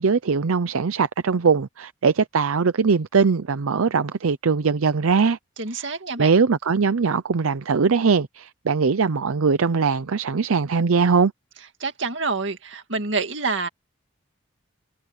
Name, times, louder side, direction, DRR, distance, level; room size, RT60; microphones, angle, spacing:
voice 1, 0.0-5.4 5.7-5.9 6.2-11.3, right 5 dB, 85° right, 0.6 m, -21 dB
voice 2, 5.6-6.3 11.8-13.7, right 4 dB, 60° right, 2.1 m, -27 dB
head